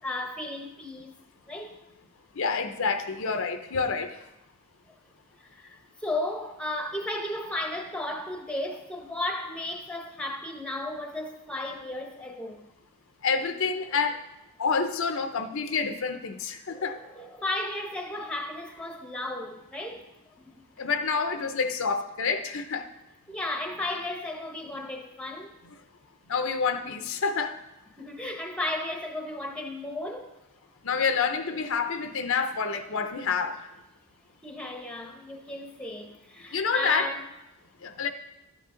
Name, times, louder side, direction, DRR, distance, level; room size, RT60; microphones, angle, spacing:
voice 1, 0.0-1.1 1.5-1.7 5.4-12.6 16.7-20.1 20.5-20.6 23.3-25.5 28.0-30.4 34.4-37.3, left 1 dB, 5° left, 0.9 m, -34 dB
voice 2, 2.4-4.2 13.2-14.2 14.6-17.0 20.8-22.9 26.3-27.6 30.8-33.7 36.5-37.1 37.8-38.1, left 5 dB, 65° left, 0.7 m, -28 dB
11.5 x 8.3 x 3.8 m
head